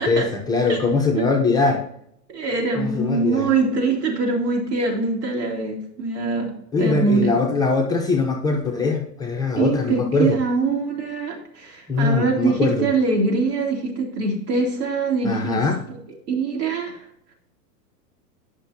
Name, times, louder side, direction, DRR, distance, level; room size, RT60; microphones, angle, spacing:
voice 1, 0.0-1.8 2.8-3.5 6.7-10.4 11.9-12.9 15.2-15.8, left 4 dB, 10° left, 0 dB, 0.6 m, -21 dB
voice 2, 2.3-6.5 6.8-7.3 9.6-15.6 16.3-17.0, right 4 dB, 80° right, -1 dB, 2.9 m, -23 dB
9.9 x 5.8 x 2.7 m, 0.70 s
hypercardioid pair, 135°, 48 cm